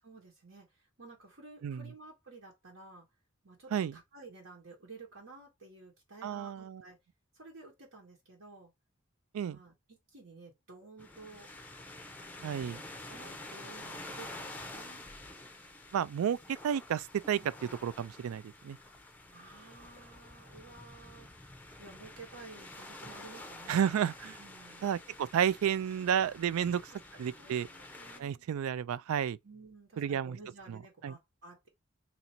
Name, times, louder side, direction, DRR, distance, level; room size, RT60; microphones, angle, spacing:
voice 1, 0.0-3.1 3.4-7.0 7.3-8.7 9.5-11.5 12.4-15.1 17.3-17.5 19.3-24.0 24.4-24.9 26.9-28.4 29.4-31.7, right 3 dB, 65° right, 1.4 m, -53 dB
voice 2, 6.2-6.8 9.3-9.6 12.4-12.8 15.9-17.4 17.8-18.8 23.7-24.4 24.8-26.9 27.2-27.7 28.2-29.4 30.0-30.4 30.7-30.8 31.0-31.2, right 8 dB, 85° right, 0.3 m, -31 dB
sound 1, 11.0-28.2, left 2 dB, 10° left, 0.5 m, -49 dB
2.9 x 2.7 x 4.3 m
head